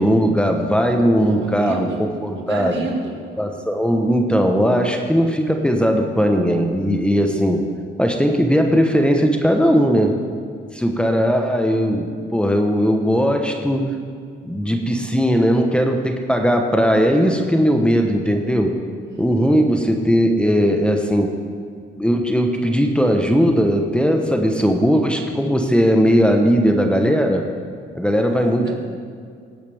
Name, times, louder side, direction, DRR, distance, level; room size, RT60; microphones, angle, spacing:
voice 1, 0.0-1.9 2.2-2.7 3.4-7.6 8.0-10.1 10.7-13.8 14.4-18.7 19.2-21.3 22.0-27.4 27.9-28.7, equal, 5° left, 3 dB, 1.2 m, -18 dB
voice 2, 1.2-3.2 19.0-19.6 28.2-28.7, right 3 dB, 65° right, 1 dB, 2.1 m, -30 dB
18.0 x 8.7 x 3.6 m, 2.2 s
cardioid pair, 90°, 20 cm